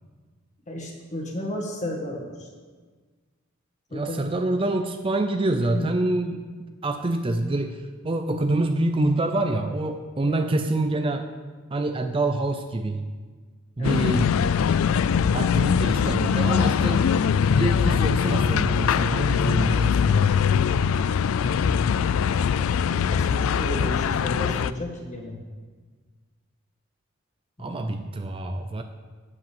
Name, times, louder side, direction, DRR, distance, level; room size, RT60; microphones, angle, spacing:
voice 1, 0.7-2.5 3.9-4.3 5.7-5.9 10.2-10.5 13.8-14.1 21.4-21.9 22.6-25.4 27.6-27.9, left 1 dB, 35° left, 0 dB, 1.8 m, -34 dB
voice 2, 3.9-6.4 6.8-7.8 8.0-11.2 11.7-13.1 13.8-14.3 15.3-17.1 17.5-20.3 27.6-28.8, right 2 dB, 25° right, 6 dB, 0.5 m, -26 dB
sound 1, 13.8-24.7, left 7 dB, 80° left, 0.3 m, -22 dB
8.5 x 7.7 x 7.2 m, 1.5 s
head